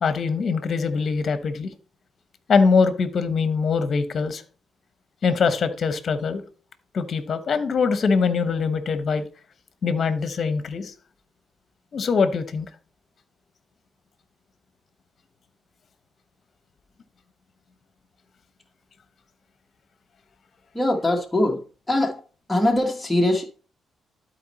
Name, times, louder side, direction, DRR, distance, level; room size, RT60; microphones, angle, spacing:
voice 1, 0.0-1.7 2.5-4.4 5.2-6.4 6.9-9.2 9.8-10.9 11.9-12.7, left 5 dB, 50° left, 1.0 m, -22 dB
voice 2, 20.7-21.6 21.9-22.1 22.5-23.5, left 1 dB, 10° left, 1.2 m, -21 dB
12.0 x 4.4 x 4.1 m
cardioid pair, 115°, 0 cm